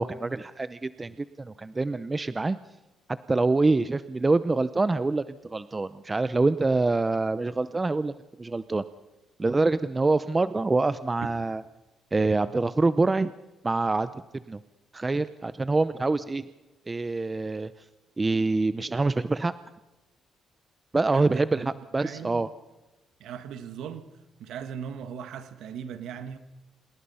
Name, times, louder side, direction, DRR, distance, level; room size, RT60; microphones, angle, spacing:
voice 1, 0.0-2.6 3.3-8.1 8.4-8.8 9.4-11.6 12.1-13.3 13.6-14.2 14.5-14.6 14.9-16.5 16.9-17.7 18.2-19.5 20.9-22.5, right 3 dB, 20° right, 14 dB, 0.7 m, -25 dB
voice 2, 21.1-21.7 22.0-22.4 23.2-24.1 24.4-26.4, right 8 dB, 80° right, 10 dB, 1.6 m, -38 dB
27.5 x 19.5 x 5.7 m, 1.0 s
cardioid pair, 90°, 0 cm